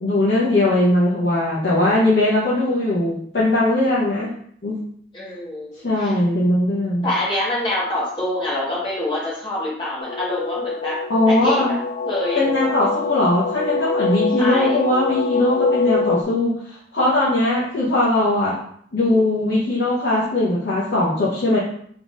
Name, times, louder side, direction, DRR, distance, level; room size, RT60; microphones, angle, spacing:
voice 1, 0.0-4.3 4.6-4.8 5.8-7.1 11.1-11.7 12.3-18.5 18.9-21.6, left 1 dB, 70° left, -9 dB, 1.2 m, -20 dB
voice 2, 5.1-6.2 7.0-11.0 11.3-11.8 12.0-12.4 14.4-14.8, left 1 dB, 25° left, -6 dB, 1.5 m, -25 dB
sound 1, 10.0-16.2, left 4 dB, 45° left, 0.4 m, -24 dB
3.7 x 3.4 x 3.9 m, 0.65 s
head